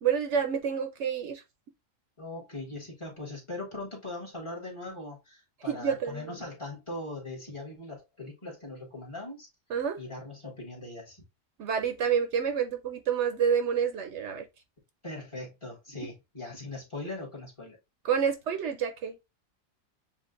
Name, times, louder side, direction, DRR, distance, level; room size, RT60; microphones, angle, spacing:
voice 1, 0.0-1.4 5.7-6.3 9.7-10.0 11.6-14.4 18.0-19.2, right 7 dB, 70° right, 0.9 m, -28 dB
voice 2, 2.2-9.5 10.0-11.2 15.0-17.8, left 2 dB, 25° left, 1.4 m, -40 dB
7.1 x 2.5 x 2.5 m
omnidirectional pair, 1.3 m